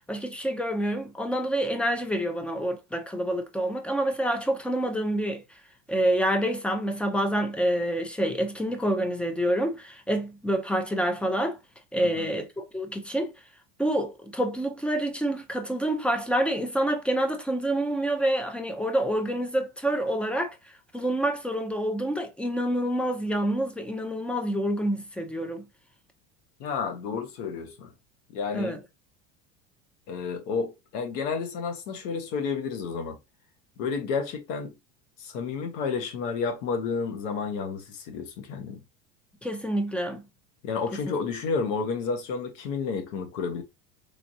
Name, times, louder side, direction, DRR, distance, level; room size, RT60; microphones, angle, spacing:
voice 1, 0.0-5.4 5.9-11.6 11.9-13.3 13.8-20.6 20.9-25.6 28.5-28.8 39.4-40.2 41.1-41.2, right 1 dB, 5° left, 0.5 m, -27 dB
voice 2, 12.0-12.3 26.6-27.9 28.3-28.8 30.1-33.2 33.8-34.8 35.2-38.8 40.6-43.6, left 5 dB, 75° left, 1.3 m, -31 dB
3.5 x 3.1 x 2.7 m
supercardioid pair, 125°, 38 cm